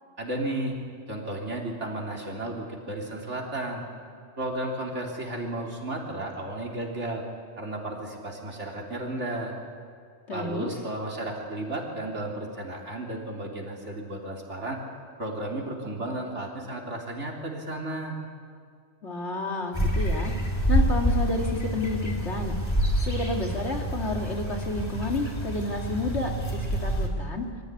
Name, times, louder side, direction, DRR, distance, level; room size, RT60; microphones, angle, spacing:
voice 1, 0.2-0.8 1.1-3.8 4.4-7.2 7.6-9.5 10.3-14.8 15.2-18.2, right 1 dB, 75° right, 0 dB, 3.8 m, -33 dB
voice 2, 10.3-10.7 19.0-20.3 20.7-22.5 23.0-27.4, left 2 dB, 65° left, 2 dB, 2.7 m, -30 dB
sound 1, 19.7-27.1, right 1 dB, 20° left, 3.6 m, -27 dB
25.0 x 15.5 x 9.9 m, 2.3 s
omnidirectional pair, 1.2 m